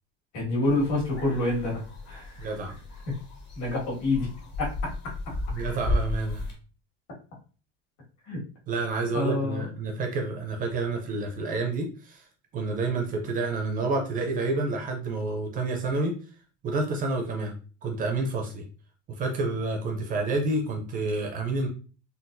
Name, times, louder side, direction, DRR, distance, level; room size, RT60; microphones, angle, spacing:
voice 1, 0.3-2.5 3.6-4.3 4.6-4.7 8.3-8.4 9.1-9.7, left 2 dB, 55° left, -4 dB, 1.7 m, -27 dB
sound 1, 0.6-6.5, left 2 dB, 35° left, 0.7 m, -34 dB
voice 2, 2.4-2.7 5.5-6.5 8.7-12.3 12.5-16.1 16.6-17.5 17.8-18.6 19.1-21.7, right 3 dB, 25° right, 2 dB, 0.4 m, -29 dB
3.9 x 2.3 x 2.5 m, 0.37 s
cardioid pair, 180°, 34 cm